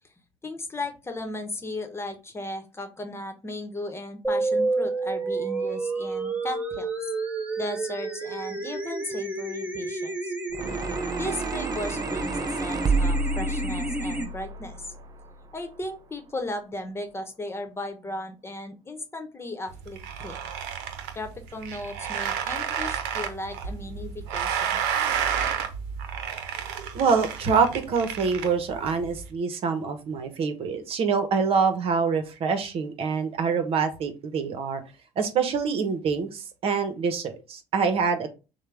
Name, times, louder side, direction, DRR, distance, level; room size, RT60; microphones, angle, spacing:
voice 1, 0.4-7.1 7.6-10.3 11.2-14.9 15.5-20.5 21.1-24.8, left 1 dB, 20° left, 7 dB, 1.0 m, -36 dB
sound 1, 4.2-14.2, right 3 dB, 10° right, 1.1 m, -30 dB
sound 2, 10.5-15.8, right 3 dB, 35° right, 0.7 m, -30 dB
sound 3, 19.7-29.3, right 8 dB, 90° right, 0.7 m, -31 dB
voice 2, 26.9-34.8 35.2-38.3, right 5 dB, 60° right, 8 dB, 1.0 m, -25 dB
6.5 x 2.3 x 3.4 m, 0.30 s
supercardioid pair, 75°, 11 cm